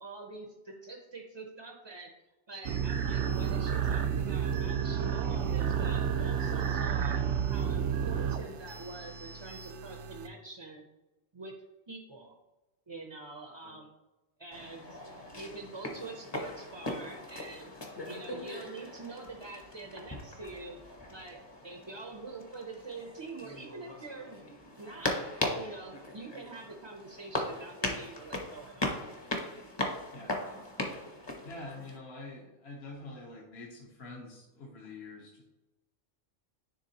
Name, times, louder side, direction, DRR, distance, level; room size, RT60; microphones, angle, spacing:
voice 1, 0.0-2.1 2.5-7.2 7.5-10.8 11.3-11.5 11.9-12.3 12.9-13.9 14.4-17.7 18.1-20.8 21.1-24.4 24.8-25.2 25.5-29.0, right 3 dB, 30° right, 1 dB, 0.5 m, -45 dB
sound 1, 2.6-10.3, right 8 dB, 75° right, 0.9 m, -31 dB
sound 2, 14.5-32.0, left 1 dB, 25° left, 0.8 m, -39 dB
voice 2, 31.4-35.4, left 2 dB, 60° left, -2 dB, 1.1 m, -46 dB
10.0 x 3.5 x 2.9 m, 1.0 s
omnidirectional pair, 1.3 m